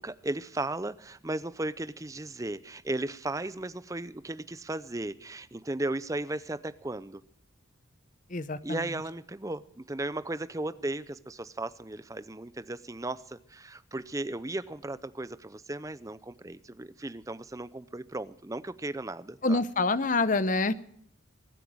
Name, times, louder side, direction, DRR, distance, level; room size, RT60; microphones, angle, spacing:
voice 1, 0.0-7.2 8.6-19.6, right 2 dB, 15° right, 0.5 m, -36 dB
voice 2, 8.3-8.8 19.4-20.7, left 3 dB, 40° left, 0.8 m, -26 dB
22.5 x 9.2 x 6.2 m
head